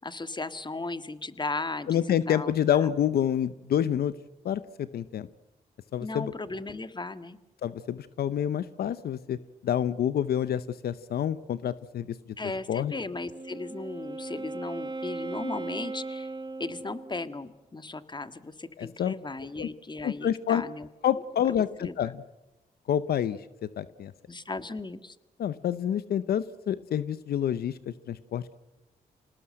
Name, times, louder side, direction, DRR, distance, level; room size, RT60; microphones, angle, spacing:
voice 1, 0.0-2.5 2.8-2.9 6.0-7.4 12.4-16.3 16.6-20.9 21.8-22.0 24.3-25.2, left 3 dB, 30° left, 12 dB, 1.7 m, -36 dB
voice 2, 1.9-4.1 4.4-5.3 5.9-6.3 7.6-9.4 9.6-12.1 12.7-12.9 18.8-19.1 19.6-19.7 20.0-20.6 21.0-22.2 22.9-24.1 25.4-28.6, left 10 dB, 80° left, 15 dB, 0.8 m, -28 dB
Wind instrument woodwind instrument, 13.1-17.4, right 3 dB, 25° right, 1.5 m, -38 dB
26.5 x 19.0 x 7.8 m, 1.0 s
supercardioid pair, 50°, 16 cm